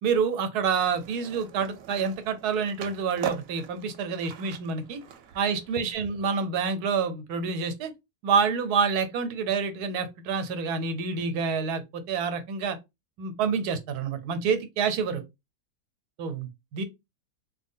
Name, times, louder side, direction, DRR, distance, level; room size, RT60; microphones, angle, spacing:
voice 1, 0.0-5.0 5.3-7.9 8.2-12.8 13.2-15.2 16.2-16.8, right 5 dB, 90° right, 1.2 m, -28 dB
Skateboard, 0.7-5.9, right 9 dB, 70° right, 0.9 m, -42 dB
3.3 x 2.1 x 3.6 m
omnidirectional pair, 1.7 m